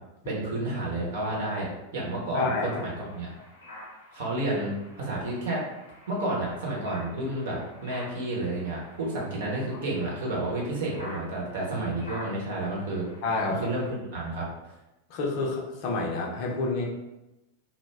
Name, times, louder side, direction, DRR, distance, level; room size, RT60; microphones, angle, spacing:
voice 1, 0.3-3.3 4.1-5.6 6.1-13.0 13.5-14.5, right 2 dB, 55° right, -3 dB, 0.8 m, -31 dB
sound 1, 2.3-13.9, left 1 dB, 75° left, 0.8 m, -48 dB
voice 2, 2.3-2.8 9.7-9.8 13.2-13.8 15.1-16.9, left 3 dB, 45° left, -2 dB, 0.6 m, -29 dB
2.2 x 2.1 x 3.3 m, 0.98 s
figure-of-eight pair, 90°, 0 cm